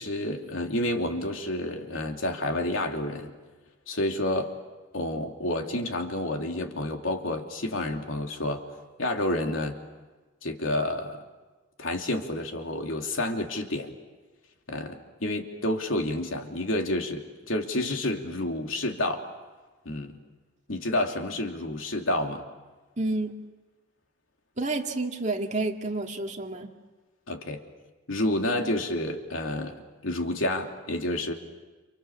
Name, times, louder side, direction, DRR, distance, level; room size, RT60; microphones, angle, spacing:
voice 1, 0.0-3.3 3.9-4.5 4.9-8.6 9.0-9.8 10.4-11.2 11.8-13.9 14.7-19.2 19.8-20.2 20.7-22.4 27.3-27.6 28.1-31.3, left 1 dB, 80° left, 3 dB, 2.9 m, -29 dB
voice 2, 23.0-23.3 24.6-26.7, right 2 dB, 35° right, 2 dB, 2.2 m, -29 dB
29.0 x 28.5 x 7.1 m, 1.3 s
head